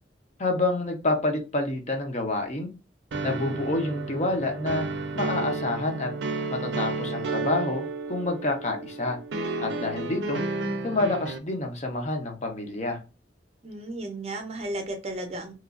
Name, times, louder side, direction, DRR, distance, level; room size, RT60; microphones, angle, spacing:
voice 1, 0.4-2.7 3.2-4.9 5.1-6.1 6.5-9.2 9.6-10.4 10.8-13.0, left 2 dB, 40° left, 3 dB, 0.6 m, -28 dB
sound 1, 3.1-11.4, right 3 dB, 80° right, 0.4 m, -32 dB
voice 2, 13.6-15.5, right 1 dB, 35° right, 5 dB, 0.6 m, -34 dB
3.0 x 2.3 x 2.4 m, 0.31 s
head